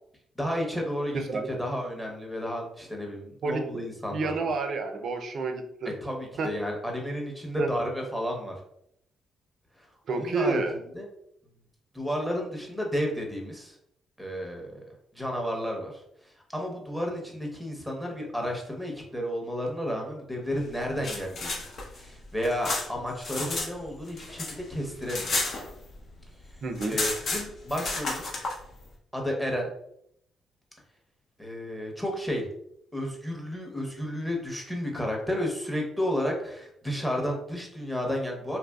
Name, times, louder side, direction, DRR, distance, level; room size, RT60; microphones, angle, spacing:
voice 1, 0.4-1.2 1.5-4.4 6.0-8.6 9.8-9.9 10.1-10.6 10.9-11.1 11.9-13.8 14.2-14.8 15.1-21.6 21.9-25.4 26.9-28.3 29.1-29.7 31.4-32.5 32.9-38.6, equal, 5° left, 0 dB, 0.8 m, -32 dB
voice 2, 1.1-1.5 3.4-3.6 4.1-5.9 6.4-6.5 7.6-7.7 10.1-10.8 26.6-27.0, right 3 dB, 60° right, 4 dB, 0.4 m, -29 dB
sound 1, 20.8-23.7 24.0-26.1 26.4-26.5 26.7-28.6, left 3 dB, 55° left, 0.7 m, -32 dB
2.9 x 2.5 x 2.3 m, 0.73 s
cardioid pair, 90°, 0 cm